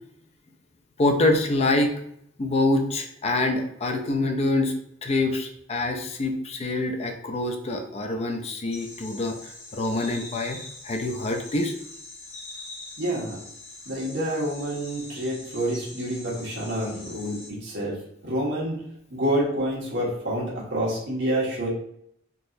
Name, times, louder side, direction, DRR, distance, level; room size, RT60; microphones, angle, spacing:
voice 1, 1.0-1.9 2.4-4.7 5.0-11.7, left 2 dB, 35° left, 4 dB, 0.4 m, -25 dB
sound 1, 8.7-17.5, left 2 dB, 85° left, 1.3 m, -43 dB
voice 2, 13.0-13.4 13.8-18.8 19.1-21.7, right 1 dB, 65° right, -4 dB, 1.3 m, -28 dB
3.8 x 2.9 x 2.6 m, 0.72 s
head